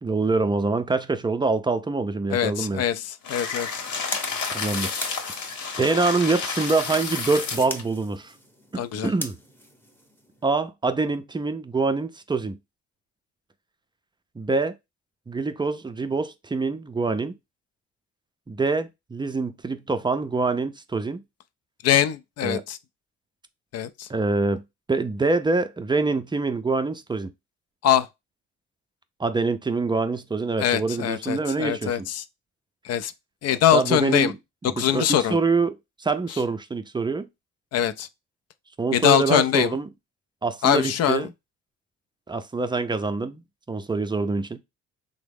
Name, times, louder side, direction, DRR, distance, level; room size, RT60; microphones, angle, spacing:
voice 1, 0.0-2.8 4.5-5.3 5.8-8.3 8.7-9.4 10.4-12.6 14.4-14.7 15.3-17.3 18.5-21.2 22.4-22.6 24.1-24.6 24.9-27.3 29.2-32.1 33.7-34.3 34.6-37.3 38.8-39.9 40.4-41.3 42.3-43.4 43.7-44.6, right 3 dB, 15° right, 0.4 m, -25 dB
voice 2, 2.3-3.8 8.8-9.1 21.8-22.8 23.7-24.1 27.8-28.1 30.6-32.2 32.8-33.1 33.4-34.3 34.8-35.4 37.7-38.1 38.9-39.7 40.6-41.2, left 10 dB, 55° left, 0.5 m, -23 dB
sound 1, 3.2-7.8, left 5 dB, 75° left, 1.0 m, -30 dB
sound 2, 3.3-10.6, equal, 5° left, 0.8 m, -41 dB
3.5 x 2.1 x 3.4 m
cardioid pair, 90°, 30 cm